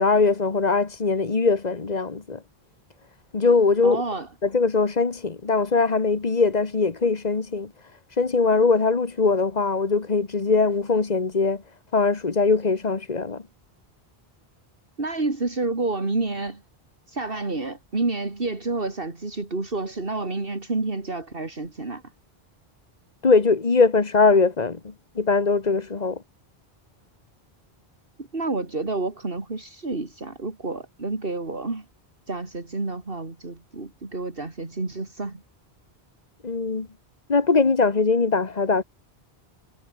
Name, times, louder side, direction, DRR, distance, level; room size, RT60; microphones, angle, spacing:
voice 1, 0.0-2.4 3.3-4.0 4.4-7.7 8.2-11.6 11.9-13.4 23.2-26.2 36.4-36.9 37.3-38.8, left 4 dB, 45° left, 1.6 m, -21 dB
voice 2, 3.8-4.3 15.0-16.6 17.1-22.0 28.2-31.8 32.3-35.4, right 3 dB, 65° right, 3.2 m, -29 dB
omnidirectional pair, 1.0 m